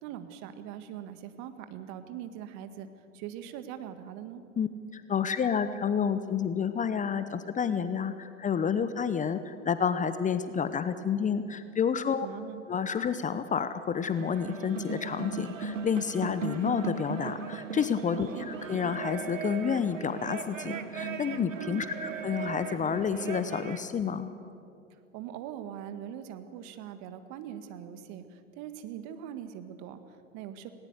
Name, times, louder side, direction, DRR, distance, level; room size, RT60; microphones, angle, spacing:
voice 1, 0.0-2.9 3.1-4.4 12.2-12.6 18.2-18.5 21.6-21.9 24.9-30.7, right 10 dB, 45° right, 10 dB, 1.7 m, -42 dB
voice 2, 4.9-12.3 12.7-24.3, left 7 dB, 20° left, 12 dB, 0.8 m, -30 dB
sound 1, 14.0-23.9, right 5 dB, 85° right, 1.3 m, -37 dB
19.0 x 18.5 x 8.1 m, 2.5 s
hypercardioid pair, 90°, 38 cm